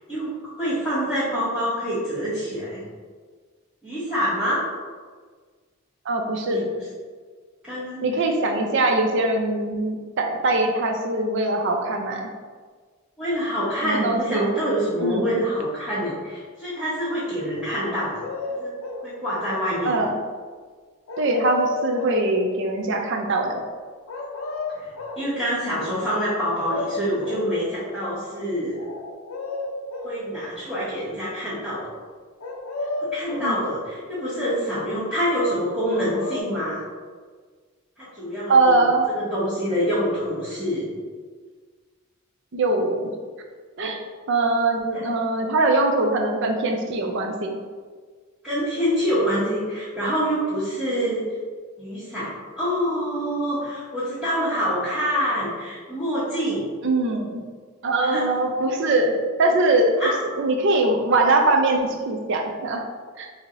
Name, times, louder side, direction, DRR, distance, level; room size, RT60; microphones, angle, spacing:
voice 1, 0.0-2.8 3.8-4.6 6.5-6.6 7.6-8.0 8.5-8.6 13.2-18.2 18.5-18.7 19.0-19.9 24.7-24.9 25.2-28.8 30.0-31.9 33.0-36.8 38.0-38.8 39.1-40.9 48.4-51.2 51.8-56.7 58.1-58.2 60.0-60.2, equal, 5° right, -15 dB, 1.1 m, -26 dB
voice 2, 6.0-6.7 8.0-12.3 13.8-14.5 15.0-15.4 19.8-20.1 21.2-23.6 33.4-33.6 38.5-39.1 42.5-43.1 43.8-44.0 44.3-47.5 56.8-57.4 57.8-60.1 60.4-62.9 63.2-63.3, right 2 dB, 55° right, 3 dB, 0.5 m, -22 dB
bird birds cooing dove nature pigeon Dove Callling, 17.7-19.1 21.1-22.3 24.1-25.3 26.3-26.4 26.6-27.5 28.8-30.2 32.4-33.6 35.9-36.4, left 3 dB, 65° left, 0.5 m, -32 dB
4.6 x 2.8 x 2.6 m, 1.5 s
head